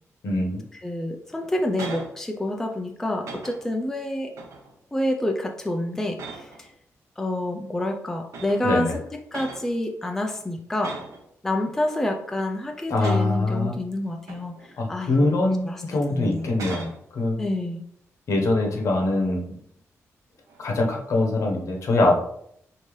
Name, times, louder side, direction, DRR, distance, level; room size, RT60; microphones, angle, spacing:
voice 1, 0.2-0.6 8.6-8.9 12.9-13.7 14.8-16.8 17.1-17.4 18.3-19.5 20.6-22.1, left 2 dB, 65° left, 1 dB, 0.9 m, -23 dB
voice 2, 0.8-4.3 4.9-6.7 7.2-11.0 11.4-15.1 15.4-15.8 16.1-16.5 16.7-16.9 17.4-17.8, left 1 dB, 5° left, 2 dB, 0.3 m, -28 dB
sound 1, 1.3-2.2 2.6-2.8 3.2-3.8 4.3-4.8 5.2-5.5 6.1-6.7 7.7-7.8 8.3-8.8 9.3-9.7 10.8-11.2 11.7-12.3 12.9-13.4 14.0-14.9 15.3-15.5 16.3-17.0 20.5-20.8, right 3 dB, 75° right, 0.9 m, -40 dB
5.1 x 2.7 x 3.1 m, 0.70 s
wide cardioid pair, 165°, 6 cm